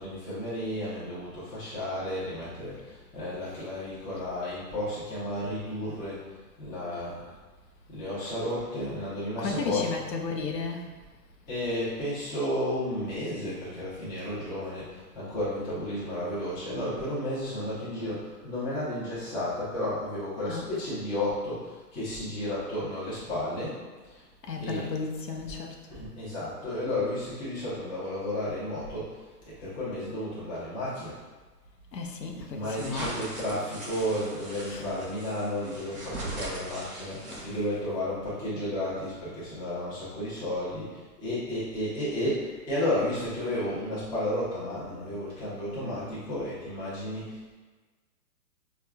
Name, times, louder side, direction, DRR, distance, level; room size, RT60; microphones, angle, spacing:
voice 1, 0.0-6.2 6.6-7.3 7.9-9.9 11.5-23.8 24.0-24.2 24.6-24.9 25.4-25.5 25.9-29.1 29.5-31.2 32.5-47.5, left 1 dB, 10° left, -10 dB, 0.5 m, -32 dB
voice 2, 9.4-10.8 20.5-20.7 24.5-25.8 31.9-33.3 34.7-34.9 37.3-37.8, left 4 dB, 85° left, 2 dB, 0.7 m, -34 dB
sound 1, 32.7-37.8, right 2 dB, 20° right, 1.1 m, -40 dB
4.5 x 2.3 x 2.3 m, 1.3 s
hypercardioid pair, 130°, 48 cm